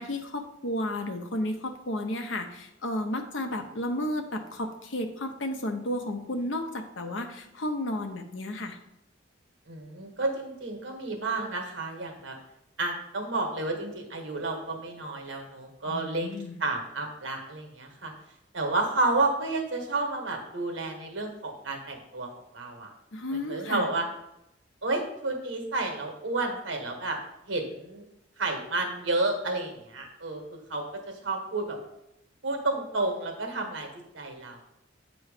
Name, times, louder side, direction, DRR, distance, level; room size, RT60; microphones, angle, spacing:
voice 1, 0.0-8.8 15.9-16.6 23.1-23.9, left 1 dB, 80° left, 5 dB, 0.8 m, -32 dB
voice 2, 9.7-12.3 12.8-16.3 16.6-18.1 18.5-22.9 23.3-24.1 24.8-27.2 27.5-28.0 28.4-31.8 32.4-33.9 34.1-34.6, right 2 dB, 90° right, 3 dB, 1.3 m, -31 dB
8.3 x 3.1 x 5.0 m, 0.84 s
head